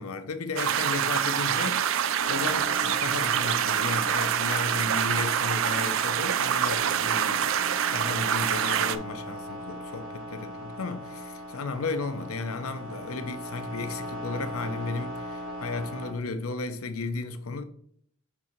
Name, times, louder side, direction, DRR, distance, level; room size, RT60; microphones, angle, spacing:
voice 1, 0.0-7.5 7.9-17.6, left 3 dB, 90° left, 0.7 m, -34 dB
sound 1, 0.6-9.0, right 9 dB, 70° right, 0.4 m, -26 dB
sound 2, 2.2-16.1, equal, 85° right, 2.5 m, -39 dB
6.2 x 3.7 x 4.2 m
head